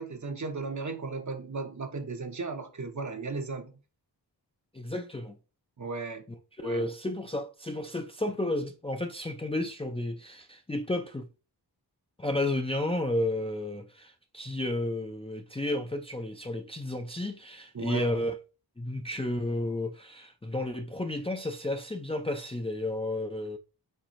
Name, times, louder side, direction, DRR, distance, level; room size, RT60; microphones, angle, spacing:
voice 1, 0.0-3.8 5.8-6.2 6.6-6.9 17.7-18.2, right 4 dB, 45° right, 0.8 m, -36 dB
voice 2, 4.7-5.4 6.3-11.3 12.2-18.3 18.8-23.6, left 1 dB, 15° left, 0.4 m, -32 dB
4.5 x 4.0 x 2.5 m
wide cardioid pair, 50°, 41 cm